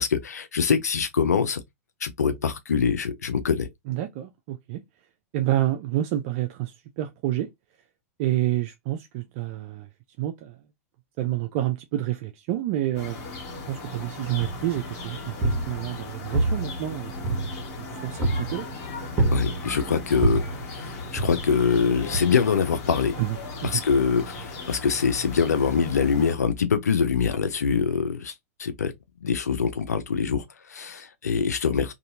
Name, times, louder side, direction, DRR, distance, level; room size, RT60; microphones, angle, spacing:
voice 1, 0.0-1.6 2.0-3.7 19.3-23.2 23.7-28.3 28.6-28.9 29.2-31.9, left 6 dB, 85° left, 0.5 m, -24 dB
voice 2, 3.9-4.8 5.3-7.5 8.2-9.9 10.2-10.6 11.2-13.2 13.7-17.3 17.8-18.7 23.2-23.4 23.6-23.8, right 14 dB, 50° right, 0.4 m, -28 dB
sound 1, 12.9-26.4, left 2 dB, 45° left, 1.3 m, -37 dB
sound 2, 14.4-14.8 15.2-16.0 16.3-17.8 18.2-18.6 19.2-19.8 20.2-20.6 21.2-21.7 22.1-22.2, right 2 dB, 30° right, 1.2 m, -26 dB
2.8 x 2.6 x 2.6 m
hypercardioid pair, 105°, 8 cm